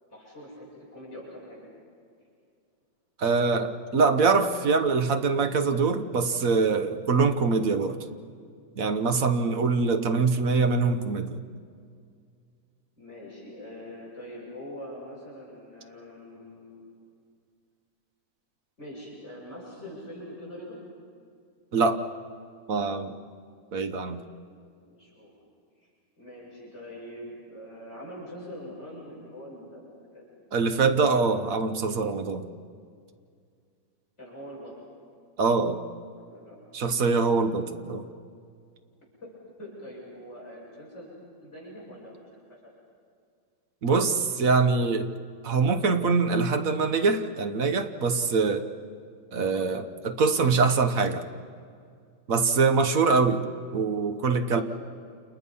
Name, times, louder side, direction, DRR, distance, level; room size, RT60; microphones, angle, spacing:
voice 1, 0.1-1.7 9.5-9.6 13.0-16.8 18.8-20.8 24.1-24.3 24.8-25.3 26.2-30.2 34.2-34.7 36.1-36.6 36.8-37.0 39.2-39.3 39.6-41.1 41.4-42.4 54.5-54.6, equal, 35° left, -6 dB, 7.9 m, -43 dB
voice 2, 3.2-8.0 8.8-11.4 21.7-22.0 22.7-23.2 23.7-24.2 30.5-32.5 35.4-35.8 36.7-38.1 43.8-45.1 45.4-48.7 49.3-51.2 52.3-53.5 53.7-54.6, right 4 dB, 50° right, 8 dB, 1.3 m, -24 dB
29.5 x 29.0 x 5.6 m, 2.3 s
omnidirectional pair, 2.1 m